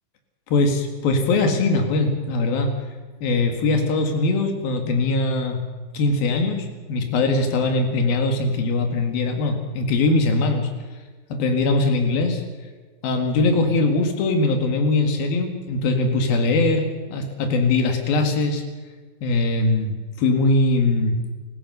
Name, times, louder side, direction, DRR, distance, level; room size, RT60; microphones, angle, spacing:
voice 1, 0.5-2.7 3.2-5.6 5.9-10.7 11.3-12.4 13.0-18.6 19.2-21.2, left 3 dB, 80° left, 4 dB, 3.9 m, -21 dB
26.0 x 15.5 x 6.7 m, 1.4 s
omnidirectional pair, 4.2 m